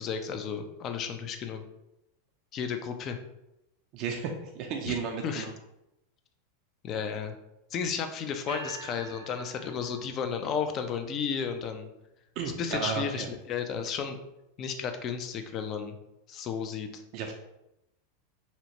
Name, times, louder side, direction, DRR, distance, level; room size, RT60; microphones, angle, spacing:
voice 1, 0.0-1.6 2.5-3.2 4.9-5.0 5.2-5.5 6.8-7.3 7.7-11.9 12.6-14.2 14.6-16.0 16.3-17.0, left 6 dB, 40° left, 7 dB, 0.4 m, -33 dB
voice 2, 3.9-5.5 12.4-13.3 17.1-17.3, right 6 dB, 50° right, 2 dB, 0.4 m, -33 dB
sound 1, 8.5-10.6, right 3 dB, 85° right, 0.7 m, -45 dB
2.8 x 2.1 x 2.9 m, 0.88 s
hypercardioid pair, 95°, 0 cm